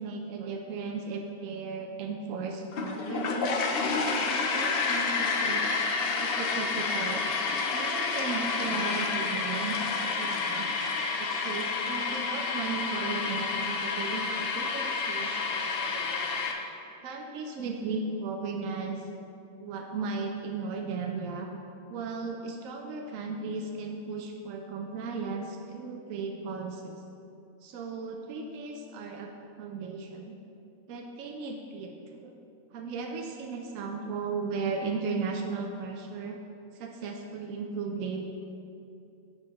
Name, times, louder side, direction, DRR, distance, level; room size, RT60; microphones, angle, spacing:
voice 1, 0.0-3.7 4.0-5.6 6.2-7.4 7.7-9.9 10.2-10.8 11.2-16.5 17.0-19.1 19.6-21.5 21.9-27.0 27.6-29.3 29.6-30.4 30.9-32.3 32.7-36.4 36.7-38.2, right 4 dB, 75° right, 2 dB, 1.0 m, -36 dB
sound 1, 2.7-16.5, left 4 dB, 55° left, 0.7 m, -29 dB
6.1 x 5.0 x 5.7 m, 2.6 s
omnidirectional pair, 1.4 m